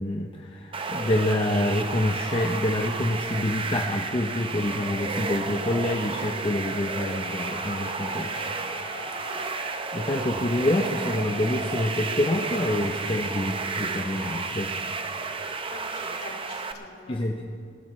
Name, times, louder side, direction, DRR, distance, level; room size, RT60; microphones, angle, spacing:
voice 1, 0.0-8.3 9.9-14.7 17.1-17.4, left 1 dB, 30° left, 1 dB, 0.7 m, -27 dB
sound 1, 0.7-16.7, right 4 dB, 30° right, 0.7 m, -32 dB
sound 2, 3.6-14.9, left 1 dB, 85° left, 3.4 m, -45 dB
voice 2, 8.2-8.6 9.2-9.5 13.1-13.6 15.7-17.2, left 2 dB, 55° left, 0 dB, 2.5 m, -45 dB
21.5 x 13.5 x 3.2 m, 2.2 s
head